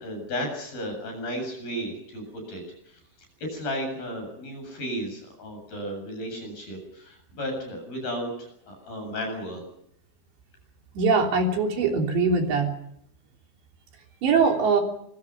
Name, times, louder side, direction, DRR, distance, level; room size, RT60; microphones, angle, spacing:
voice 1, 0.0-3.0 3.4-9.6, equal, 50° left, 4 dB, 9.3 m, -34 dB
voice 2, 11.0-12.7 14.2-14.8, right 4 dB, 70° right, 3 dB, 5.4 m, -22 dB
26.0 x 24.5 x 5.9 m, 0.73 s
omnidirectional pair, 5.2 m